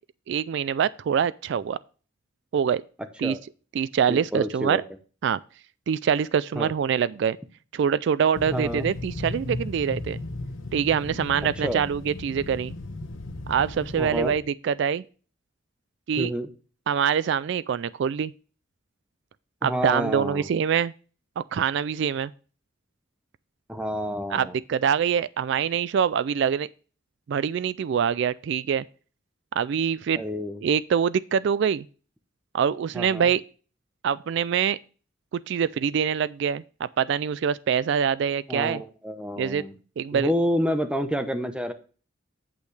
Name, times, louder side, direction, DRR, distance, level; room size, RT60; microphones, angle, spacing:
voice 1, 0.3-1.8 2.5-2.8 3.2-3.4 3.7-4.8 5.2-5.4 5.9-7.4 7.7-10.2 10.7-12.7 13.5-15.0 16.1-16.3 16.9-18.3 19.6-20.9 21.4-22.3 24.3-26.7 27.3-28.8 29.5-30.2 30.6-31.8 32.5-33.4 34.0-34.8 35.5-36.6 37.0-38.8 39.4-39.6 40.0-40.3, right 7 dB, 60° right, 0.3 m, -24 dB
voice 2, 4.1-4.8 6.5-6.7 8.5-8.9 11.6-11.8 14.0-14.3 16.2-16.5 19.6-20.5 23.7-24.6 30.1-30.6 32.9-33.3 38.5-39.7 40.1-41.7, equal, 5° right, 0.8 m, -29 dB
sound 1, 8.4-14.4, left 2 dB, 80° left, 1.1 m, -36 dB
8.5 x 8.2 x 3.2 m
head